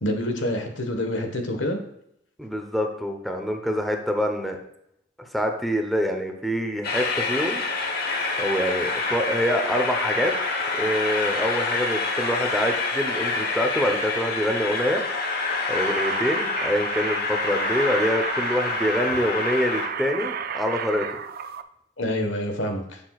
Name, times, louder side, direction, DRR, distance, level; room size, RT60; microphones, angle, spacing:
voice 1, 0.0-1.8 22.0-23.0, left 1 dB, 90° left, 5 dB, 1.4 m, -27 dB
voice 2, 2.4-4.6 5.2-7.6 8.4-10.3 10.7-15.0 15.7-21.2, equal, ahead, 3 dB, 0.9 m, -25 dB
Train, 6.8-19.9, left 3 dB, 55° left, 1.2 m, -27 dB
sound 1, 15.7-21.6, right 7 dB, 55° right, 0.4 m, -33 dB
12.0 x 6.9 x 2.4 m, 0.75 s
head